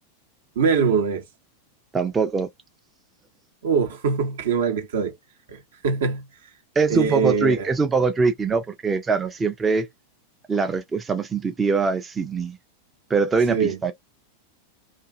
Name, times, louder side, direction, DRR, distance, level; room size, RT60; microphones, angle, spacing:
voice 1, 0.6-1.2 3.6-5.1 5.5-6.2 6.9-7.7 13.5-13.8, right 6 dB, 60° right, 0.7 m, -23 dB
voice 2, 1.9-2.5 6.8-9.9 10.5-12.6 13.1-13.9, right 4 dB, 15° right, 0.4 m, -23 dB
2.5 x 2.4 x 2.4 m
figure-of-eight pair, 90°, 0 cm